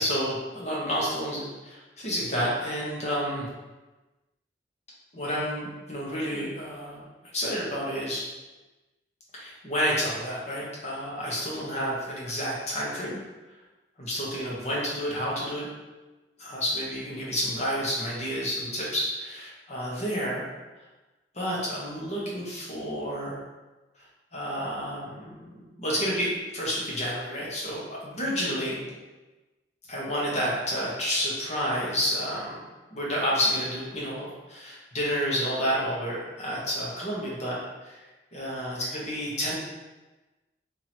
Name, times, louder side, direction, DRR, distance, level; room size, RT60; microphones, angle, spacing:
voice 1, 0.0-3.5 5.1-7.1 7.3-8.2 9.3-13.2 14.0-15.7 16.4-20.4 21.3-23.4 24.3-25.5 25.8-28.8 29.9-32.5 32.9-37.6 37.8-38.0 38.3-39.5, equal, 40° left, -5 dB, 1.1 m, -30 dB
3.0 x 2.8 x 4.2 m, 1.1 s
head